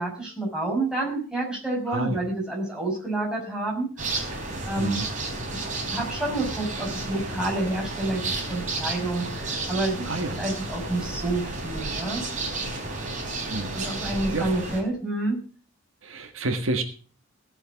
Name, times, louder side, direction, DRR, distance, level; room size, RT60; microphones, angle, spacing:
voice 1, 0.0-3.9 4.7-5.0 5.5-8.2 8.5-10.0 10.4-12.2 13.7-15.4, right 2 dB, 5° right, -4 dB, 6.2 m, -28 dB
voice 2, 1.9-2.2 4.8-5.1 10.1-10.4 13.5-13.8 14.3-14.5 16.0-16.8, right 2 dB, 70° right, 6 dB, 1.7 m, -29 dB
sound 1, 4.0-14.8, right 2 dB, 40° right, 4.2 m, -32 dB
17.0 x 7.9 x 6.0 m, 0.39 s
head